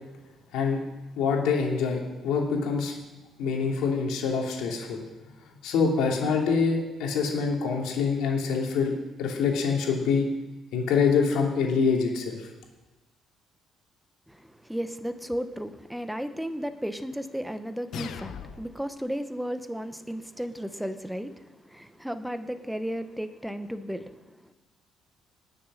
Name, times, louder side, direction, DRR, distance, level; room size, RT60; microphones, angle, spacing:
voice 1, 1.2-2.9 3.4-5.0 5.6-8.9 9.2-10.3 10.7-12.5, left 5 dB, 90° left, 0 dB, 3.1 m, -25 dB
voice 2, 14.3-24.5, equal, ahead, 10 dB, 0.7 m, -34 dB
sound 1, 17.9-18.9, left 7 dB, 60° left, 0.8 m, -39 dB
19.0 x 7.2 x 6.4 m, 1.1 s
cardioid pair, 170°, 0 cm